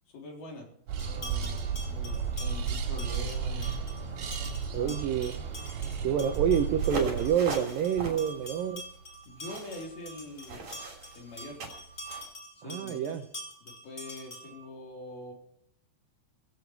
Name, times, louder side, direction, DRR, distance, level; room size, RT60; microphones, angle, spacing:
voice 1, 0.1-0.7 1.0-3.8 4.7-5.0 9.3-10.9 11.2-11.6 12.6-13.2 13.6-15.3, left 2 dB, 55° left, 0 dB, 5.4 m, -44 dB
sound 1, 0.9-7.3, right 6 dB, 60° right, 3.8 m, -33 dB
sound 2, 1.0-14.7, equal, 15° left, 2.9 m, -46 dB
voice 2, 4.7-5.3 6.0-8.8 12.6-13.2, right 8 dB, 90° right, 7 dB, 1.9 m, -28 dB
sound 3, 6.8-12.3, right 4 dB, 40° right, 4.2 m, -39 dB
17.0 x 16.0 x 4.6 m, 0.66 s
omnidirectional pair, 5.3 m